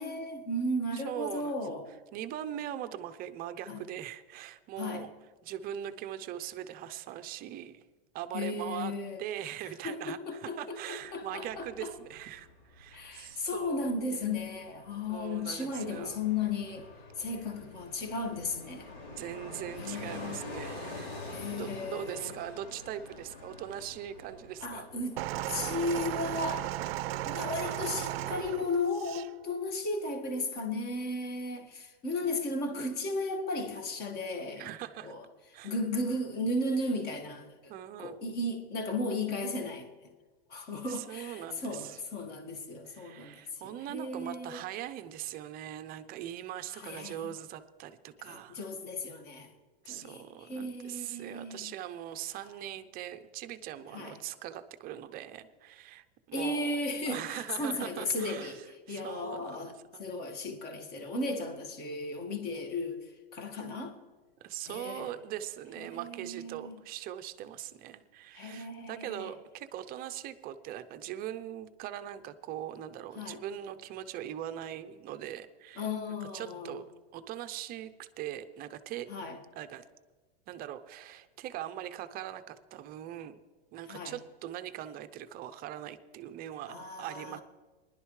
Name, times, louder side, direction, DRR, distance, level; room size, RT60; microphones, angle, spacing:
voice 1, 0.0-1.9 3.7-3.8 4.8-5.1 8.3-9.2 9.8-11.9 12.9-16.9 17.2-18.9 19.8-20.4 21.3-22.3 24.6-25.2 25.5-26.7 27.2-34.7 35.0-35.3 35.6-37.7 38.0-40.1 40.5-44.6 46.7-47.3 48.3-49.5 49.9-51.7 53.9-54.2 56.3-63.9 64.7-65.1 65.8-66.7 68.3-69.2 73.2-73.4 75.8-76.8 79.1-79.4 83.9-84.2 86.7-87.4, left 2 dB, 30° left, 1.8 m, -35 dB
voice 2, 0.9-1.6 2.1-5.1 5.4-7.8 8.1-8.9 9.2-14.0 15.1-16.2 19.1-24.8 32.2-32.5 34.6-35.1 35.5-35.7 37.7-38.2 40.9-42.0 42.9-48.6 49.8-56.8 57.1-60.0 64.4-75.9 76.3-76.8 77.1-79.1 79.6-79.8 80.5-83.4 83.7-87.4, right 11 dB, 30° right, 0.6 m, -41 dB
Fixed-wing aircraft airplane, 11.0-28.0 28.3-28.4, left 2 dB, 85° left, 4.1 m, -47 dB
sound 1, 25.2-29.3 30.2-30.3, right 14 dB, 75° right, 0.5 m, -35 dB
20.0 x 11.5 x 3.2 m
supercardioid pair, 140°, 30 cm